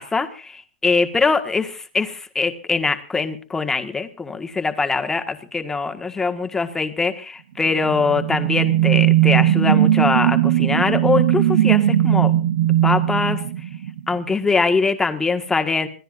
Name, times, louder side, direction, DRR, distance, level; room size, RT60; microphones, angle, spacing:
voice 1, 0.0-12.3 12.8-13.4 14.1-15.9, left 4 dB, 5° left, 7 dB, 1.7 m, -22 dB
sound 1, 7.7-14.2, right 12 dB, 60° right, 1.1 m, -18 dB
25.5 x 18.5 x 2.6 m, 0.38 s
hypercardioid pair, 160°, 6 cm